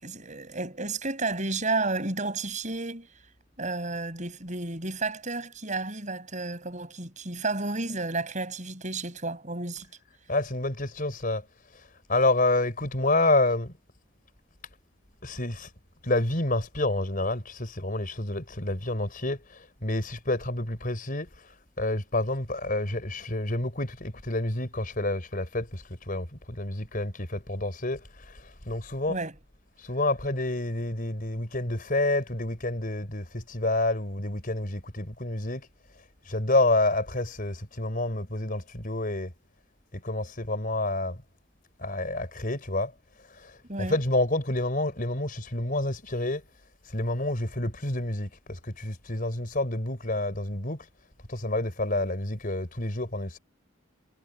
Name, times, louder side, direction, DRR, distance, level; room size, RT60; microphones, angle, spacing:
voice 1, 0.0-3.1 3.6-9.9 29.1-29.3 43.7-44.0, right 3 dB, 35° right, 7.0 m, -32 dB
voice 2, 10.3-11.4 12.1-13.7 15.2-15.7 16.0-21.3 21.8-29.3 29.8-35.7 36.3-39.3 39.9-41.2 41.8-42.9 43.3-46.4 46.9-50.9 51.3-53.4, left 2 dB, 40° left, 4.5 m, -28 dB
head